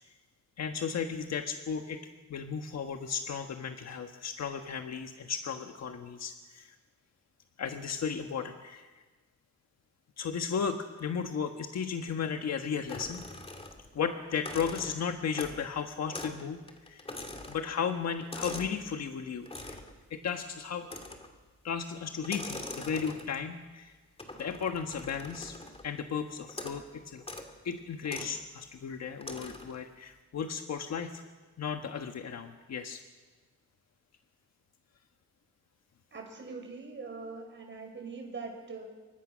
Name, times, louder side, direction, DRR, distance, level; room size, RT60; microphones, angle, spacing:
voice 1, 0.6-2.0 2.3-6.7 7.6-8.9 10.2-13.2 13.9-16.6 16.9-17.1 17.5-19.8 20.1-20.9 21.6-23.9 24.4-25.6 25.8-27.2 27.6-31.2 31.6-33.0, left 6 dB, 60° left, 5 dB, 1.4 m, -35 dB
sound 1, 12.9-14.0 14.3-15.7 16.1-16.4 16.7-18.8 19.5-19.9 20.8-21.4 22.2-23.5 24.2-25.9 26.5-26.8 27.2-27.5 28.0-28.4 29.2-29.8, left 2 dB, 20° left, 2.6 m, -43 dB
voice 2, 36.1-38.8, right 4 dB, 40° right, 2 dB, 6.0 m, -42 dB
29.5 x 24.5 x 6.3 m, 1.3 s
wide cardioid pair, 160°, 30 cm